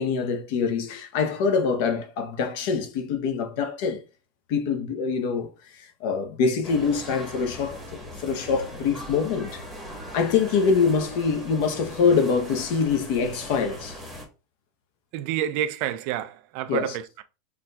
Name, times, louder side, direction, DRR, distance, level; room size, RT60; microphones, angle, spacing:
voice 1, 0.0-4.0 4.5-9.6 10.1-14.0 16.7-17.0, left 5 dB, 50° left, 0.7 m, -25 dB
sound 1, 6.6-14.3, equal, ahead, 1.0 m, -40 dB
voice 2, 15.1-17.2, right 11 dB, 45° right, 0.3 m, -29 dB
5.8 x 2.6 x 2.2 m
supercardioid pair, 170°, 0 cm